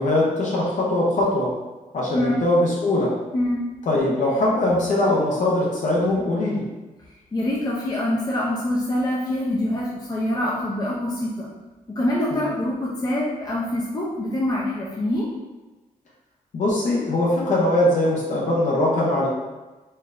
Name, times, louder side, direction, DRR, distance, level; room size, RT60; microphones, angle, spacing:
voice 1, 0.0-1.5 1.9-3.1 3.9-6.6 12.3-12.5 16.5-19.3, left 1 dB, 60° left, -5 dB, 0.8 m, -21 dB
voice 2, 2.1-2.4 3.3-3.6 7.3-11.5 11.9-15.3, left 1 dB, 25° left, -5 dB, 0.6 m, -25 dB
4.4 x 3.3 x 2.5 m, 1.2 s
wide cardioid pair, 135°, 15 cm